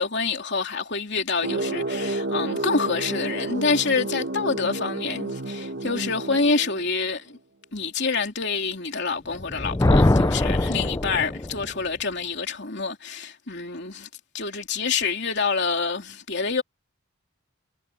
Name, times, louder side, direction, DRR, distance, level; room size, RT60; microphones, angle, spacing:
voice 1, 0.0-7.4 7.7-14.1 14.3-16.6, left 4 dB, 50° left, 3.3 m, -27 dB
sound 1, 1.4-7.2, right 2 dB, 50° right, 1.4 m, -30 dB
Thunder, 9.3-11.7, left 2 dB, 15° left, 0.4 m, -22 dB
head